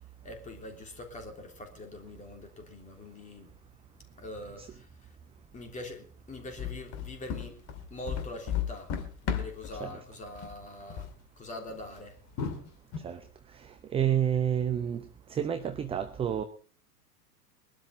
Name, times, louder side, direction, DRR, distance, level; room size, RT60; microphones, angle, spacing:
voice 1, 0.2-3.5 4.2-5.2 5.5-7.6 7.9-9.0 9.2-12.2, left 1 dB, 15° left, 3.3 m, -44 dB
sound 1, 6.6-9.8 10.3-10.6 10.9-11.1 11.7-11.8 12.4-13.0, left 8 dB, 30° left, 2.0 m, -34 dB
voice 2, 13.5-15.0 15.3-16.4, right 9 dB, 10° right, 0.8 m, -29 dB
21.5 x 12.5 x 4.1 m
figure-of-eight pair, 95°, 47 cm